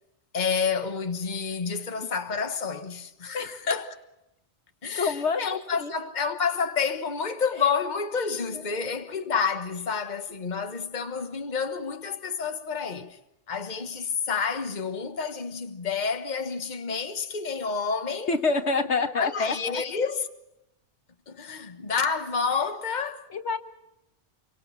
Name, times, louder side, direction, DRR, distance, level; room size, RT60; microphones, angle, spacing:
voice 1, 0.3-3.9 4.8-13.2 13.5-18.3 19.2-20.3 21.3-23.3, left 5 dB, 40° left, 1.5 m, -29 dB
voice 2, 5.0-5.5 5.8-5.9 8.7-8.9 18.3-19.8 23.3-23.6, left 4 dB, 75° left, 1.9 m, -27 dB
27.0 x 24.0 x 5.8 m
omnidirectional pair, 1.2 m